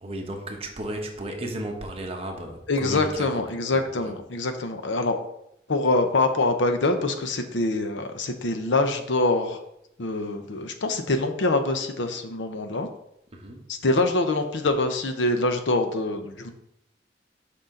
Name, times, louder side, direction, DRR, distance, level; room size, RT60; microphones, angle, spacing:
voice 1, 0.0-3.4 3.7-4.2 13.3-13.6, right 1 dB, 35° right, 2 dB, 1.1 m, -34 dB
voice 2, 2.7-5.2 5.7-9.6 10.0-12.9 13.7-16.5, left 2 dB, 85° left, 7 dB, 0.8 m, -25 dB
6.6 x 5.5 x 3.8 m, 0.78 s
head